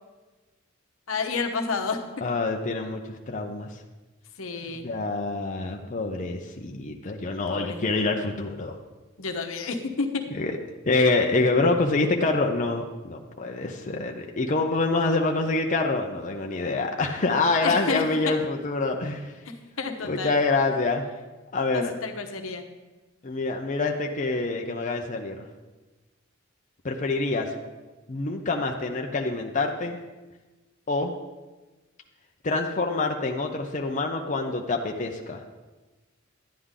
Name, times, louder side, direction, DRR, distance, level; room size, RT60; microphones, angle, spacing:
voice 1, 1.1-2.0 4.4-4.9 7.5-7.8 9.2-10.2 17.6-18.3 19.5-20.4 21.7-22.6, left 4 dB, 80° left, 4 dB, 1.1 m, -30 dB
voice 2, 2.2-3.7 4.8-8.8 10.3-10.6 10.8-19.3 20.0-21.0 21.5-21.9 23.2-25.5 26.8-27.5 28.1-30.0 30.9-31.1 32.4-35.4, left 3 dB, 40° left, 2 dB, 0.7 m, -26 dB
11.5 x 9.8 x 3.7 m, 1.2 s
head